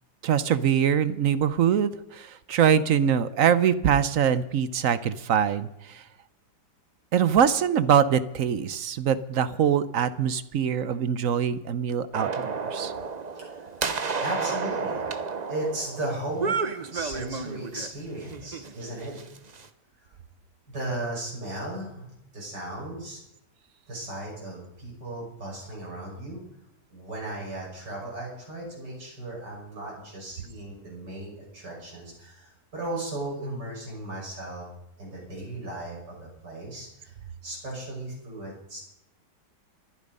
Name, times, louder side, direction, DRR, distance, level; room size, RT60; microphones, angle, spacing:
voice 1, 0.2-6.0 7.1-12.9, right 8 dB, 60° right, 15 dB, 1.0 m, -23 dB
sound 1, 12.1-17.9 18.3-19.7, right 5 dB, 35° right, 0.8 m, -31 dB
voice 2, 13.3-13.8 14.2-15.0 15.5-16.6 16.9-19.2 20.0-20.1 20.7-22.1 22.3-23.2 23.9-26.4 26.9-34.7 35.0-37.1 37.4-38.8, right 1 dB, 80° right, -3 dB, 6.7 m, -36 dB
25.0 x 11.0 x 5.4 m, 0.83 s
omnidirectional pair, 1.8 m